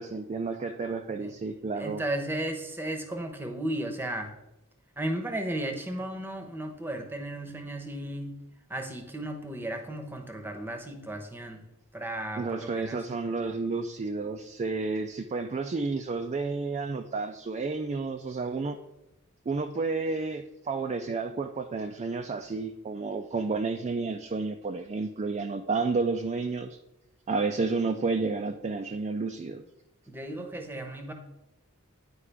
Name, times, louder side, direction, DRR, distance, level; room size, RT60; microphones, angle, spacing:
voice 1, 0.0-2.0 12.4-18.8 19.5-26.8 27.3-29.6, right 4 dB, 30° right, 4 dB, 0.3 m, -31 dB
voice 2, 1.7-4.3 5.0-8.3 8.7-11.6 11.9-13.0 30.1-31.1, right 1 dB, 10° right, 5 dB, 0.8 m, -34 dB
9.8 x 4.7 x 3.4 m, 0.90 s
head